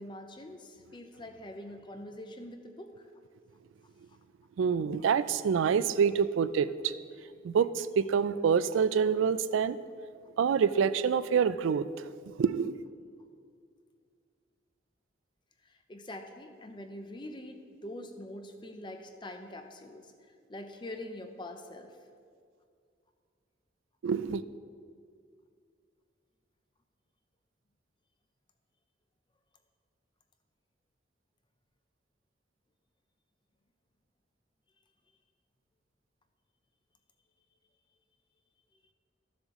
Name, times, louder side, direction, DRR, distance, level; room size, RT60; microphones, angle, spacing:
voice 1, 0.0-3.1 15.7-20.1 20.5-22.0, left 1 dB, 25° left, 6 dB, 0.6 m, -44 dB
voice 2, 4.6-6.9 7.4-9.8 10.4-11.9 12.3-12.7 24.0-24.4, right 6 dB, 80° right, 15 dB, 0.3 m, -26 dB
14.0 x 7.2 x 3.0 m, 2.2 s
head